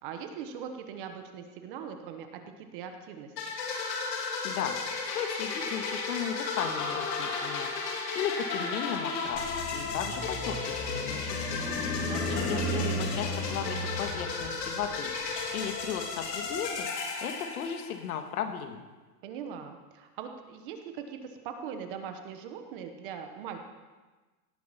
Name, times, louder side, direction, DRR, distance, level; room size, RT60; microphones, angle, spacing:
voice 1, 0.0-3.3 12.1-12.7 19.2-23.6, right 7 dB, 30° right, 6 dB, 1.1 m, -41 dB
sound 1, 3.4-18.1, left 4 dB, 75° left, 3.4 m, -34 dB
voice 2, 4.4-4.8 5.1-7.7 8.1-11.8 12.3-15.1 15.5-16.9 17.2-18.8, left 8 dB, 60° left, 7 dB, 1.7 m, -35 dB
sound 2, 9.2-16.4, equal, 15° left, 3.0 m, -35 dB
17.5 x 9.4 x 5.7 m, 1.3 s
supercardioid pair, 170°, 50 cm